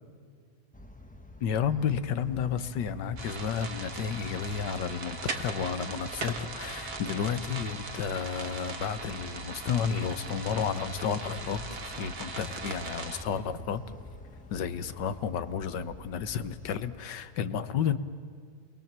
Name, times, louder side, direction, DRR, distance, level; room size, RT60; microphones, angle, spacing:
sound 1, 0.7-16.9, left 1 dB, 5° left, 0.9 m, -48 dB
voice 1, 1.4-13.8 14.5-18.0, left 7 dB, 85° left, 12 dB, 1.7 m, -32 dB
Bus, 2.0-15.9, left 3 dB, 65° left, 3.0 m, -56 dB
sound 2, 3.2-13.2, right 4 dB, 60° right, 2.1 m, -39 dB
29.0 x 22.5 x 7.5 m, 2.1 s
omnidirectional pair, 1.9 m